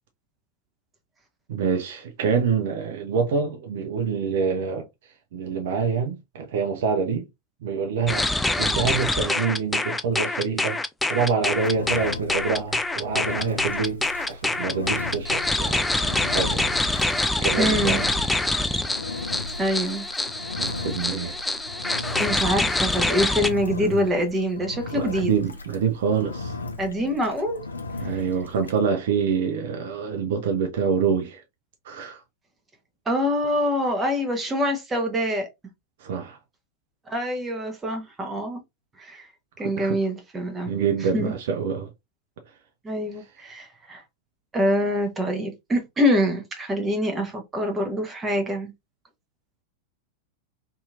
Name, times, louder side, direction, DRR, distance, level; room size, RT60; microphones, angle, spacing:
voice 1, 1.5-4.9 5.3-7.3 7.6-8.3 8.6-10.8 11.1-15.8 16.3-16.7 17.1-18.1 20.6-21.4 23.8-24.1 24.9-26.6 28.0-31.4 31.9-32.2 36.0-36.4 39.6-40.0 40.7-41.9, right 6 dB, 55° right, 0.5 m, -26 dB
sound 1, 8.1-23.5, left 2 dB, 5° left, 0.3 m, -25 dB
Engine, 11.5-28.8, left 3 dB, 75° left, 0.4 m, -36 dB
voice 2, 17.6-18.0 19.6-20.1 22.2-25.3 26.8-27.6 33.1-35.5 37.1-38.6 39.0-39.3 39.6-40.7 41.1-41.3 42.8-44.0 44.5-48.7, equal, 15° right, 0.9 m, -25 dB
2.7 x 2.7 x 2.3 m
figure-of-eight pair, 90°, 0 cm